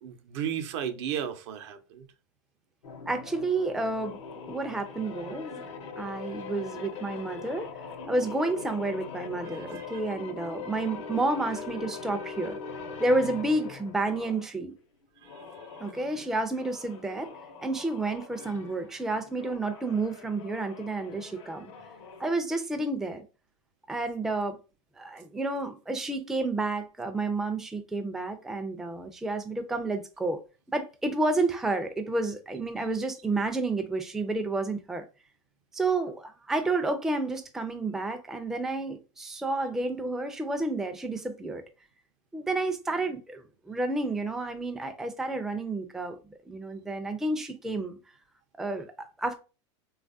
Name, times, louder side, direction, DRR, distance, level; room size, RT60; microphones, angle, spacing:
voice 1, 0.0-2.0 9.4-10.0, right 9 dB, 65° right, 0.6 m, -34 dB
sound 1, 2.8-14.5 15.2-22.3, left 5 dB, 75° left, 0.7 m, -42 dB
voice 2, 3.1-4.2 4.5-5.6 6.0-7.7 8.1-12.6 13.0-14.7 15.8-17.3 17.6-21.7 22.2-23.2 23.9-24.6 25.0-30.4 30.7-35.0 35.7-41.6 42.3-46.2 46.5-48.0 48.5-49.4, right 2 dB, 5° right, 0.4 m, -30 dB
3.1 x 2.3 x 2.6 m
hypercardioid pair, 105°, 16 cm